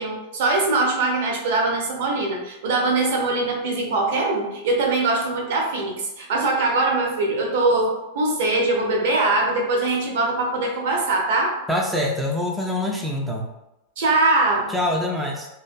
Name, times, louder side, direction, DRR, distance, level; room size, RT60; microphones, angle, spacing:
voice 1, 0.0-11.5 14.0-14.7, right 2 dB, 55° right, 0 dB, 0.5 m, -22 dB
voice 2, 11.7-13.5 14.7-15.5, left 1 dB, 5° right, -2 dB, 0.3 m, -25 dB
2.4 x 2.3 x 2.4 m, 0.93 s
figure-of-eight pair, 90°, 0 cm